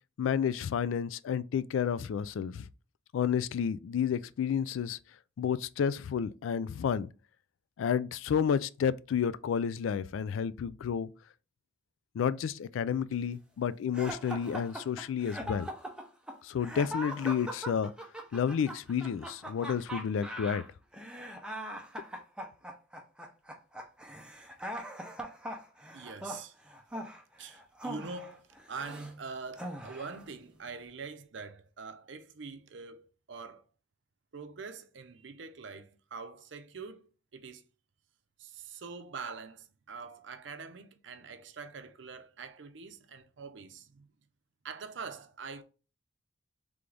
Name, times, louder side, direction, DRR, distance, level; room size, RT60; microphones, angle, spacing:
voice 1, 0.2-2.7 3.1-5.0 5.4-7.1 7.8-11.1 12.2-15.7 16.4-17.9 18.3-20.7, left 7 dB, 85° left, 0.3 m, -31 dB
sound 1, 13.9-29.1 29.6-30.2, equal, 5° right, 0.6 m, -41 dB
voice 2, 25.9-26.6 27.4-33.7 34.3-37.7 38.4-44.1 44.6-45.6, right 4 dB, 70° right, 0.6 m, -44 dB
3.8 x 3.4 x 3.3 m
head